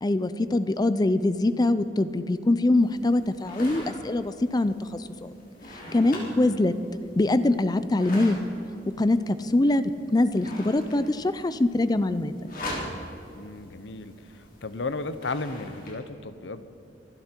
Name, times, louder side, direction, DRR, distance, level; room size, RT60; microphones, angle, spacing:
voice 1, 0.0-5.3 5.9-6.7 7.2-8.4 9.0-12.3, left 2 dB, 20° left, 13 dB, 0.4 m, -23 dB
sound 1, 2.8-15.9, left 1 dB, 50° left, 3.6 m, -42 dB
voice 2, 6.1-6.6 13.3-16.7, left 3 dB, 70° left, 13 dB, 0.8 m, -35 dB
25.0 x 11.5 x 4.5 m, 2.7 s
head